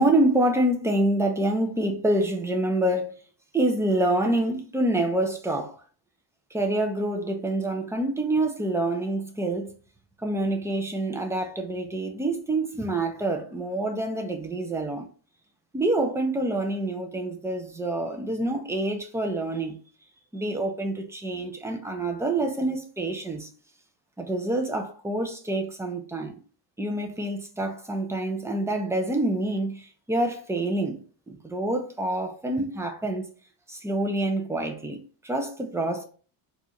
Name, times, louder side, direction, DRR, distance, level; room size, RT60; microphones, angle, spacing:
voice 1, 0.0-3.1 3.5-5.8 6.5-9.7 10.2-15.1 15.7-19.8 20.3-23.5 24.2-26.4 26.8-33.2 33.7-35.0 35.2-36.0, right 1 dB, 5° right, 0.5 m, -27 dB
3.8 x 2.5 x 2.9 m
cardioid pair, 130°, 47 cm